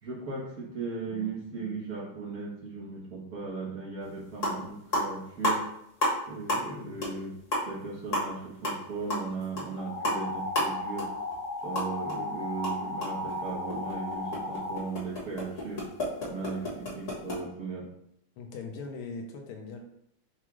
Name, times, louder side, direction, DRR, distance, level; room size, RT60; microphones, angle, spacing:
voice 1, 0.0-5.7 6.3-7.4 7.7-11.2 11.6-15.9 16.3-17.9, right 4 dB, 50° right, -5 dB, 1.2 m, -37 dB
sound 1, 4.0-4.1 4.3-4.6 4.9-6.2 6.5-6.7 7.0-7.2 7.5-12.2 12.5-17.4, left 1 dB, 40° left, 1.5 m, -32 dB
voice 2, 6.5-7.0 18.4-19.8, left 4 dB, 80° left, 2 dB, 1.5 m, -41 dB
sound 2, 9.8-14.8, left 1 dB, 60° left, 1.4 m, -35 dB
5.8 x 2.3 x 3.0 m, 0.75 s
omnidirectional pair, 2.3 m